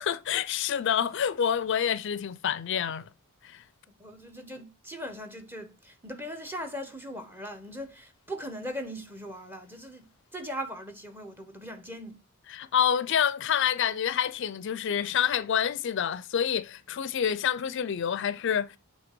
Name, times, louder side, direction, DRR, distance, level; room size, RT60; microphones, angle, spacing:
voice 1, 0.0-3.1 3.4-3.6 12.5-18.8, left 8 dB, 55° left, 0.4 m, -27 dB
voice 2, 4.0-12.2, equal, 10° right, 0.9 m, -39 dB
7.9 x 3.3 x 4.4 m
head